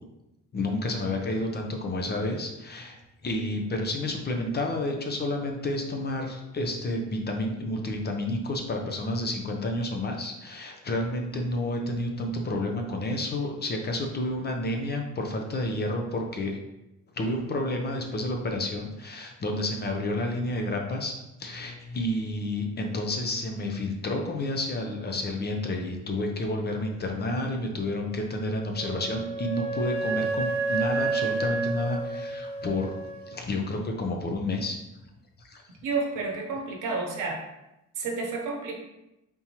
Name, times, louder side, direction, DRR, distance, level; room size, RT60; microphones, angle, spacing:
voice 1, 0.5-16.6 17.2-21.1 21.4-32.9 33.3-34.8 35.4-35.6, left 1 dB, 35° left, 2 dB, 0.6 m, -30 dB
Wind instrument woodwind instrument, 28.7-33.4, right 3 dB, 50° right, 0.6 m, -30 dB
voice 2, 35.8-37.4 38.0-38.8, right 4 dB, 85° right, 0 dB, 0.8 m, -30 dB
3.6 x 2.7 x 2.9 m, 0.91 s
cardioid pair, 90°, 30 cm